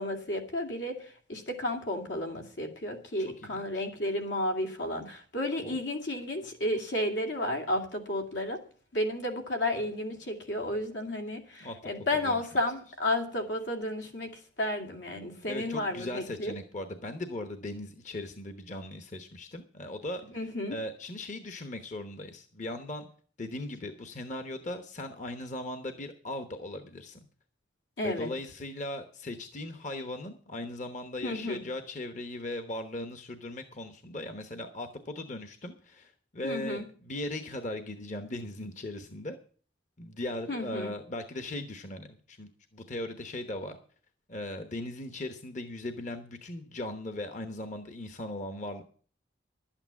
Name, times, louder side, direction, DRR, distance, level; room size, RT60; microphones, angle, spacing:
voice 1, 0.0-8.6 8.9-16.5 20.3-20.8 28.0-28.3 31.2-31.6 36.4-36.8 40.5-40.9, left 1 dB, 80° left, 4 dB, 2.5 m, -32 dB
voice 2, 3.4-3.9 5.6-5.8 11.6-11.8 12.2-12.3 15.5-20.2 20.7-23.1 23.4-27.3 28.0-39.4 40.0-43.8 44.3-48.8, left 1 dB, 40° left, 8 dB, 1.0 m, -38 dB
12.0 x 8.8 x 7.2 m, 0.44 s
head